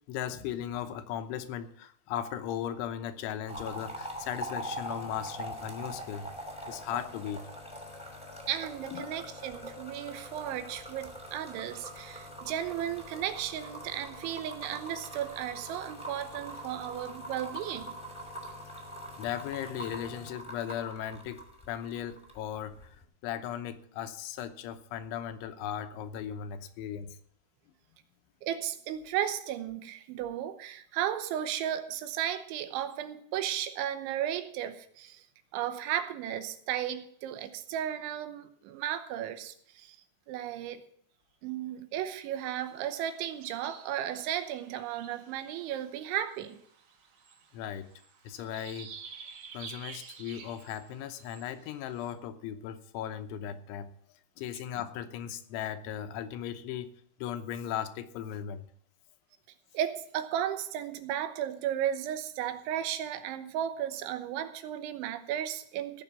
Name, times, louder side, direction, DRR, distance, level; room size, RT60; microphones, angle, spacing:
voice 1, 0.1-6.3 6.7-7.5 8.9-9.1 19.2-27.2 47.5-47.9 48.2-49.0 49.5-53.9 54.4-56.9 57.2-58.7, left 10 dB, 90° left, 3.4 m, -37 dB
sound 1, 3.5-22.4 22.7-23.0, equal, ahead, 1.7 m, -43 dB
voice 2, 8.5-18.0 28.4-35.2 35.5-40.0 40.3-40.8 41.4-46.6 59.7-66.0, right 10 dB, 90° right, 3.4 m, -34 dB
sound 2, 42.3-52.1, right 6 dB, 65° right, 1.7 m, -51 dB
17.0 x 6.3 x 7.2 m
omnidirectional pair, 5.3 m